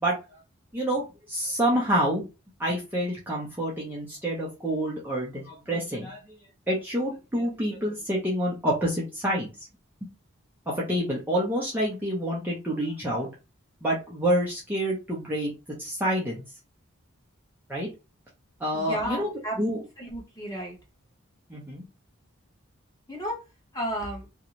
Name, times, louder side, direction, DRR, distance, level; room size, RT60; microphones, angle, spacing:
voice 1, 0.7-2.2 2.6-6.4 6.7-9.7 10.7-13.3 13.8-15.5 15.8-16.5 17.7-17.9 18.6-19.3 19.6-19.8 21.5-21.8, equal, 10° right, -6 dB, 0.6 m, -28 dB
voice 2, 18.7-19.6 20.0-20.8 23.1-23.4 23.7-24.3, equal, 15° left, -2 dB, 1.0 m, -32 dB
2.6 x 2.3 x 2.9 m, 0.28 s
head